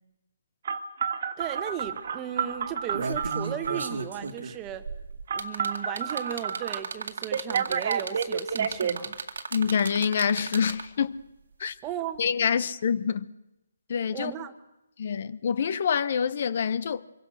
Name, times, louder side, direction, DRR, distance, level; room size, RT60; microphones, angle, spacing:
Telephone, 0.6-4.0 5.3-6.8 7.3-8.9, right 7 dB, 50° right, 1.9 m, -30 dB
voice 1, 1.4-4.8 5.3-9.2 11.8-12.2 14.1-14.5, right 10 dB, 15° right, 1.4 m, -36 dB
sound 1, 1.4-1.5 1.8-2.1 2.6-11.0 12.2-12.3, right 4 dB, 75° right, 2.2 m, -35 dB
voice 2, 9.5-11.2 11.6-11.7 12.2-13.3 13.9-14.3 15.0-17.0, left 7 dB, 50° left, 0.9 m, -26 dB
26.0 x 23.5 x 6.5 m
hypercardioid pair, 160°, 0 cm